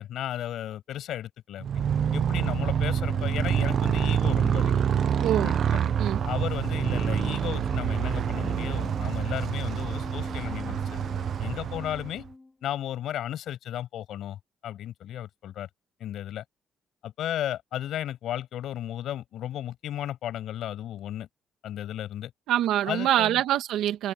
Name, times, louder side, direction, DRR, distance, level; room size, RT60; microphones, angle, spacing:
voice 1, 0.0-1.7 2.1-4.8 5.3-5.8 6.2-11.0 11.4-12.2 12.6-15.7 16.0-16.4 17.0-21.3 21.6-22.3 22.8-23.4, left 11 dB, 75° left, 8.0 m, -34 dB
Motorcycle, 1.6-12.3, right 9 dB, 60° right, 0.5 m, -27 dB
Organ, 1.8-12.5, left 2 dB, 20° left, 4.3 m, -41 dB
voice 2, 5.2-5.6 6.0-6.2 22.5-24.1, right 12 dB, 85° right, 2.0 m, -25 dB
cardioid pair, 90°, 0 cm